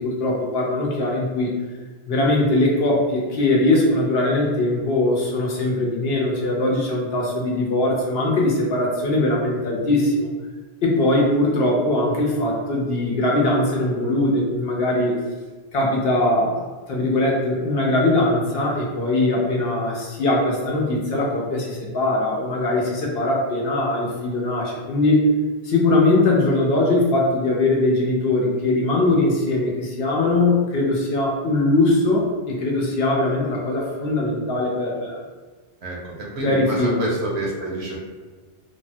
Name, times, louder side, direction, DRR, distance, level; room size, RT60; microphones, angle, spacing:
voice 1, 0.0-1.6 2.1-10.3 10.8-15.2 15.7-25.2 25.6-35.2 36.4-37.1, left 2 dB, 65° left, -3 dB, 0.8 m, -21 dB
voice 2, 35.8-38.0, right 1 dB, 70° right, -3 dB, 1.0 m, -28 dB
3.3 x 2.1 x 2.6 m, 1.4 s
omnidirectional pair, 1.2 m